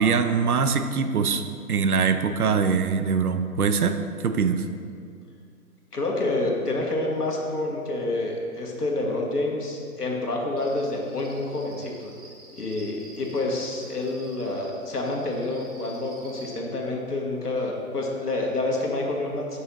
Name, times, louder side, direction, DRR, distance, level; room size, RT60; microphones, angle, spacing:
voice 1, 0.0-1.4 1.7-4.7, right 5 dB, 75° right, 8 dB, 0.6 m, -23 dB
voice 2, 5.9-12.1 12.6-19.6, left 2 dB, 85° left, -1 dB, 1.4 m, -28 dB
Cricket, 10.6-16.5, right 2 dB, 25° right, 0.7 m, -49 dB
5.5 x 3.9 x 5.7 m, 2.2 s
figure-of-eight pair, 135°, 45 cm